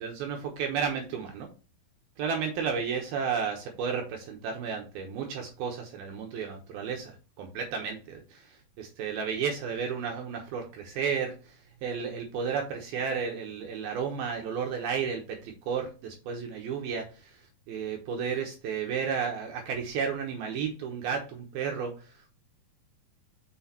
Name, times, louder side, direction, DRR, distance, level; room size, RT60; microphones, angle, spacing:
voice 1, 0.0-1.5 2.2-22.3, right 6 dB, 70° right, 2 dB, 2.7 m, -33 dB
6.3 x 6.2 x 3.0 m, 0.33 s
omnidirectional pair, 4.8 m